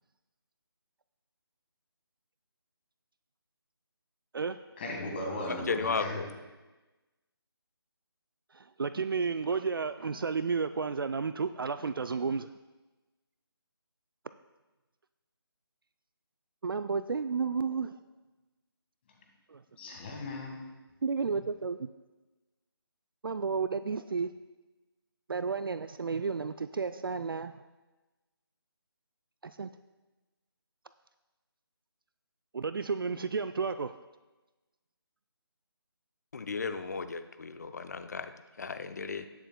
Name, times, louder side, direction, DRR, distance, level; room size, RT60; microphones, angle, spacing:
voice 1, 4.8-6.2 19.8-20.6, left 1 dB, 25° left, 1 dB, 1.6 m, -37 dB
voice 2, 5.5-6.3 36.3-39.3, left 4 dB, 40° left, 10 dB, 0.5 m, -35 dB
voice 3, 8.5-12.5 16.6-17.9 19.5-19.6 21.0-21.9 23.2-24.3 25.3-27.5 29.4-29.7 32.5-33.9, right 5 dB, 60° right, 11 dB, 0.4 m, -32 dB
19.0 x 6.9 x 2.2 m, 1.1 s
figure-of-eight pair, 160°, 13 cm